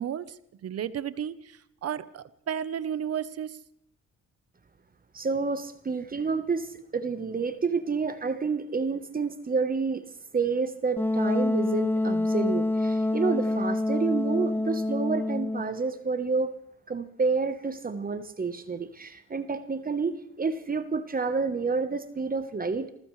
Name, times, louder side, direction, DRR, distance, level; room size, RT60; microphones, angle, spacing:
voice 1, 0.0-3.6, right 9 dB, 55° right, 15 dB, 1.0 m, -33 dB
voice 2, 5.1-10.0 10.3-16.5 16.9-22.9, right 4 dB, 30° right, 10 dB, 1.2 m, -29 dB
Wind instrument woodwind instrument, 11.0-15.8, left 2 dB, 5° left, 0.8 m, -26 dB
27.5 x 14.5 x 3.3 m, 0.70 s
cardioid pair, 90°, 30 cm